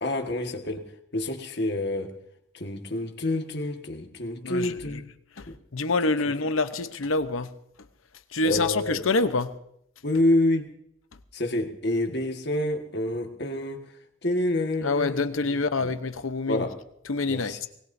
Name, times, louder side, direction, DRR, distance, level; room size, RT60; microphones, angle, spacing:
voice 1, 0.0-2.2 2.5-5.0 5.5-5.6 8.4-9.0 10.0-10.7 11.3-13.8 14.2-15.9 16.5-16.8 17.3-17.6, left 1 dB, 55° left, 4 dB, 1.6 m, -28 dB
voice 2, 4.4-5.0 5.4-7.5 8.3-9.5 14.8-16.7 17.1-17.7, left 3 dB, 90° left, 10 dB, 0.9 m, -26 dB
23.0 x 20.0 x 2.7 m, 0.73 s
head